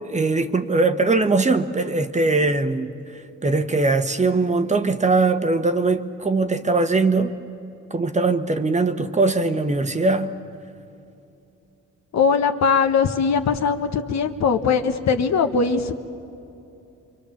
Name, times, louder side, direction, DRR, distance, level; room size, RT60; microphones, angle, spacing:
voice 1, 0.0-7.3 7.9-10.3, right 3 dB, 25° right, 8 dB, 1.2 m, -21 dB
voice 2, 12.1-15.9, left 5 dB, 65° left, 6 dB, 1.5 m, -20 dB
26.5 x 24.0 x 7.1 m, 2.7 s
cardioid pair, 90°, 30 cm